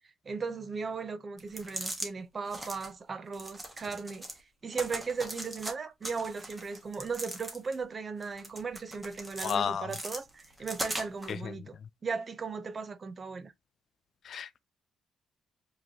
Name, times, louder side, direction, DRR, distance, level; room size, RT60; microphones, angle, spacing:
voice 1, 0.3-4.3 4.6-11.8 12.0-13.5, right 5 dB, 30° right, 0.6 m, -37 dB
sound 1, 1.4-2.1 2.5-2.9 3.3-4.4 4.7-5.7 6.0-7.8 8.2-9.6 9.9-11.3, right 1 dB, 10° right, 1.2 m, -39 dB
voice 2, 9.4-9.9 14.3-14.6, left 7 dB, 50° left, 0.3 m, -31 dB
5.0 x 3.1 x 2.7 m
cardioid pair, 135°, 0 cm